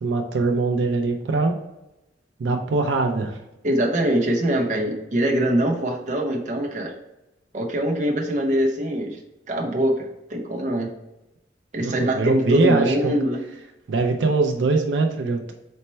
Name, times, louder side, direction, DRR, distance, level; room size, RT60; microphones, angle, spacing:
voice 1, 0.0-1.5 2.4-3.4 11.8-13.1 13.9-15.5, right 3 dB, 85° right, 4 dB, 0.4 m, -22 dB
voice 2, 3.6-6.9 7.5-9.2 9.5-10.9 11.7-13.4, right 1 dB, 40° right, 0 dB, 0.7 m, -23 dB
4.2 x 2.1 x 4.2 m, 0.95 s
head